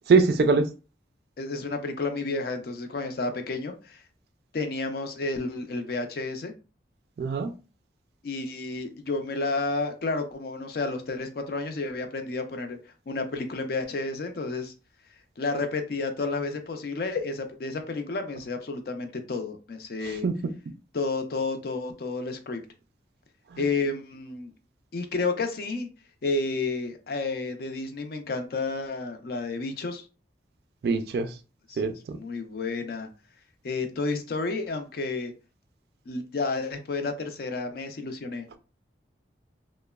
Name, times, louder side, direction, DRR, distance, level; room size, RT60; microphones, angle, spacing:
voice 1, 0.1-0.7 7.2-7.5 20.2-20.3 30.8-31.3 31.8-31.9, right 4 dB, 60° right, 10 dB, 0.3 m, -22 dB
voice 2, 1.4-4.0 4.5-6.5 8.2-12.8 13.1-14.7 15.4-20.3 20.9-22.6 23.6-24.5 24.9-25.9 26.2-30.0 31.7-31.8 32.1-33.1 33.6-35.3 36.1-38.4, left 3 dB, 55° left, 7 dB, 0.4 m, -31 dB
2.9 x 2.0 x 2.2 m, 0.34 s
head